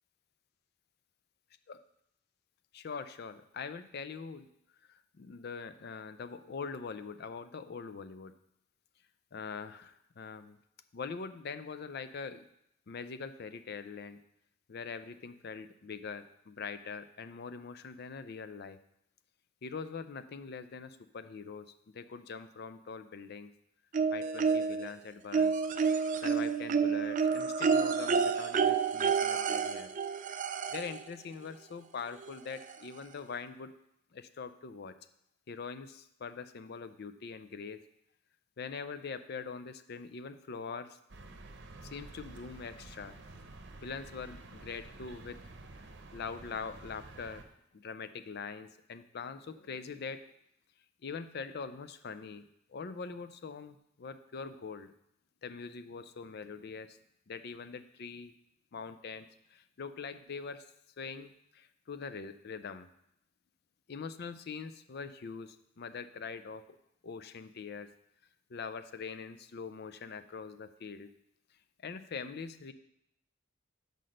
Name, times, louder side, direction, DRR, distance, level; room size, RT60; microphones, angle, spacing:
voice 1, 2.7-4.5 5.2-8.3 9.3-10.5 10.9-12.4 12.9-14.2 14.7-18.8 19.6-21.7 22.0-23.5 24.1-25.5 26.2-29.9 30.7-33.7 34.1-34.9 35.5-37.8 38.6-40.9 41.9-43.1 43.8-45.4 46.1-47.4 47.8-50.2 51.0-52.4 52.7-54.9 55.4-56.9 57.3-58.3 58.7-59.2 59.8-60.6 61.0-61.3 61.9-62.9 63.9-66.6 67.0-67.9 68.5-71.1 71.8-72.7, left 5 dB, 55° left, 11 dB, 0.5 m, -43 dB
sound 1, 23.9-24.9 25.3-31.0 32.2-32.3 32.7-32.8, right 5 dB, 40° right, 0.4 m, -29 dB
sound 2, 41.1-47.4, right 2 dB, 60° right, 0.8 m, -50 dB
5.9 x 5.3 x 6.4 m, 0.78 s
head